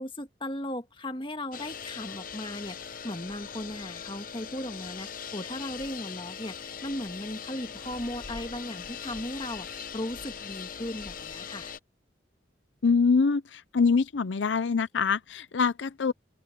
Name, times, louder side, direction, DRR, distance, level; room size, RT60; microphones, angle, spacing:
voice 1, 0.0-11.7, left 1 dB, 25° left, 1.7 m, -37 dB
sound 1, 1.5-11.8, left 7 dB, 50° left, 0.9 m, -40 dB
voice 2, 12.8-16.1, left 5 dB, 80° left, 0.6 m, -24 dB
open air
head